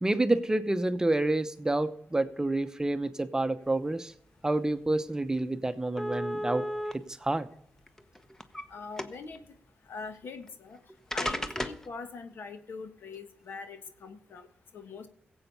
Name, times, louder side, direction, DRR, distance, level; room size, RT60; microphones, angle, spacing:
voice 1, 0.0-4.1 4.4-6.7 7.2-7.5, right 2 dB, 15° right, 11 dB, 0.8 m, -28 dB
sound 1, 4.9-5.0 5.3-5.4 6.0-6.9 7.8-8.6 9.0-9.4 10.5-10.6 11.1-11.9, equal, 15° left, 1.0 m, -33 dB
voice 2, 8.7-9.4 9.9-10.8 11.1-14.5 14.7-15.1, left 4 dB, 70° left, 8 dB, 1.4 m, -42 dB
16.5 x 8.0 x 5.5 m, 0.70 s
cardioid pair, 75°, 4 cm